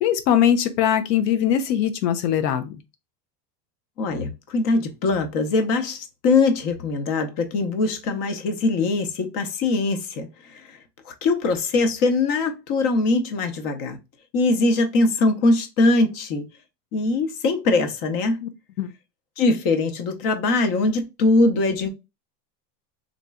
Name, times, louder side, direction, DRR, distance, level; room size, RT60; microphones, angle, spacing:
voice 1, 0.0-2.7 18.4-18.5 18.8-18.9, left 9 dB, 80° left, 0.7 m, -21 dB
voice 2, 4.0-10.8 11.1-14.0 14.3-16.5 16.9-18.4 19.4-21.9, left 3 dB, 40° left, 0.8 m, -22 dB
3.8 x 2.9 x 2.3 m
supercardioid pair, 135°, 49 cm